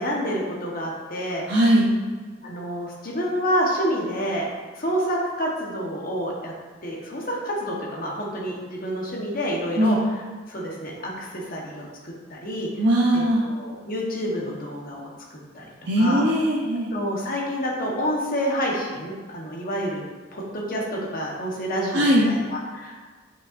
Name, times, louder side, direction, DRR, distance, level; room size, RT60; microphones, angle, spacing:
voice 1, 0.0-1.4 2.4-6.5 6.8-10.0 10.5-12.7 13.1-15.6 16.0-16.2 16.9-20.0 20.3-23.0, equal, 45° left, -2 dB, 1.2 m, -28 dB
voice 2, 1.5-1.9 9.7-10.0 12.8-13.5 15.8-16.9 21.9-22.3, equal, 65° right, -6 dB, 0.8 m, -19 dB
6.4 x 5.7 x 2.6 m, 1.4 s
head